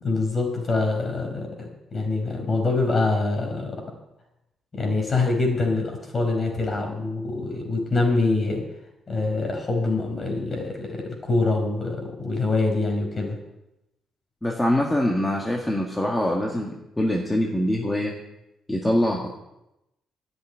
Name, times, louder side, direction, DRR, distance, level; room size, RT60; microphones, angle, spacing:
voice 1, 0.0-3.8 4.7-8.6 9.1-13.4, left 3 dB, 35° left, 2 dB, 4.7 m, -25 dB
voice 2, 14.4-16.7 17.0-18.1 18.7-19.3, left 1 dB, 10° left, -1 dB, 1.9 m, -23 dB
11.0 x 8.0 x 9.5 m, 0.90 s
cardioid pair, 90°, 0 cm